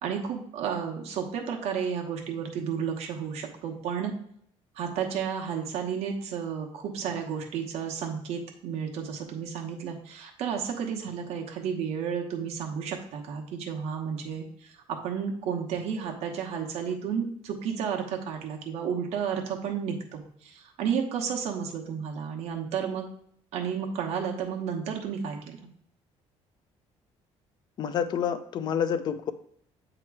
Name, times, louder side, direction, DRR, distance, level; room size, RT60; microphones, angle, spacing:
voice 1, 0.0-4.2 4.8-23.1 23.5-25.6, right 7 dB, 65° right, 1 dB, 1.0 m, -32 dB
voice 2, 27.8-29.3, left 8 dB, 40° left, 11 dB, 0.5 m, -28 dB
8.4 x 3.0 x 4.6 m, 0.65 s
cardioid pair, 175°, 12 cm